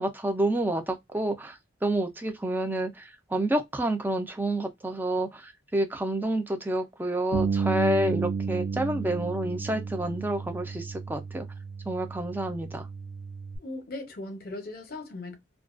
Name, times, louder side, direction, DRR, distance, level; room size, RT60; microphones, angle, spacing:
voice 1, 0.0-11.5 11.9-12.9, right 1 dB, 10° right, 0.4 m, -29 dB
Bass guitar, 7.3-13.6, right 5 dB, 85° right, 0.6 m, -32 dB
voice 2, 13.6-15.4, left 2 dB, 50° left, 0.7 m, -38 dB
2.3 x 2.2 x 2.4 m
head